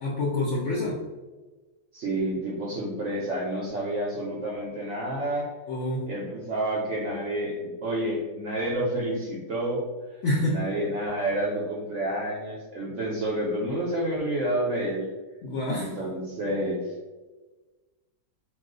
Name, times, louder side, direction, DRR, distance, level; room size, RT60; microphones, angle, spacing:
voice 1, 0.0-1.0 5.7-6.0 10.2-10.6 15.4-16.0, left 1 dB, 65° left, -4 dB, 0.7 m, -27 dB
voice 2, 1.9-5.5 6.1-9.8 10.5-15.1 15.7-16.9, right 1 dB, 65° right, -4 dB, 0.8 m, -29 dB
2.4 x 2.3 x 3.7 m, 1.2 s
omnidirectional pair, 1.7 m